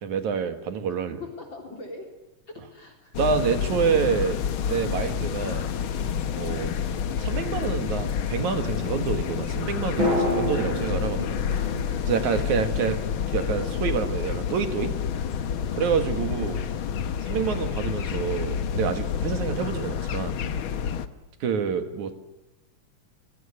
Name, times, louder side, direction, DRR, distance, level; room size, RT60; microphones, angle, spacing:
voice 1, 0.0-1.2 3.2-5.7 6.4-6.7 7.2-11.3 12.1-13.0 13.3-14.9 15.8-16.7 17.2-20.4 21.4-22.1, right 6 dB, 65° right, 8 dB, 3.1 m, -27 dB
voice 2, 1.4-2.1 2.5-3.1 5.9-6.2 11.5-12.2 15.2-15.5 20.5-20.7, left 2 dB, 35° left, 2 dB, 4.3 m, -44 dB
sound 1, 3.1-21.1, left 8 dB, 60° left, 1.4 m, -29 dB
sound 2, 10.0-14.0 14.2-14.3, equal, 35° right, 7.8 m, -31 dB
28.0 x 19.0 x 9.9 m, 1.0 s
omnidirectional pair, 3.7 m